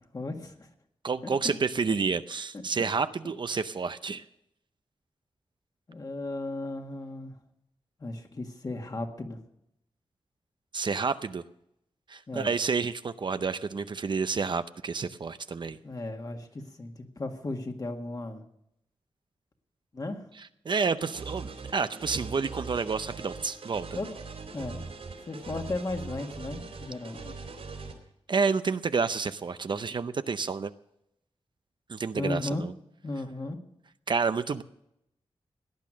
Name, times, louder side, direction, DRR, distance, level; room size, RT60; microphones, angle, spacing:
voice 1, 0.1-0.5 5.9-7.3 8.0-9.4 12.3-12.5 15.8-18.4 19.9-20.2 24.0-24.1 24.5-24.9 25.3-27.4 32.1-32.6 33.0-33.6, left 2 dB, 35° left, 4 dB, 1.8 m, -35 dB
voice 2, 1.0-4.2 10.7-11.4 12.1-15.8 20.6-24.0 28.3-30.7 31.9-32.7 34.1-34.6, right 5 dB, 50° right, 11 dB, 0.6 m, -29 dB
sound 1, 21.0-27.9, right 4 dB, 75° right, 3.7 m, -41 dB
17.5 x 10.5 x 6.3 m, 0.80 s
wide cardioid pair, 135°, 10 cm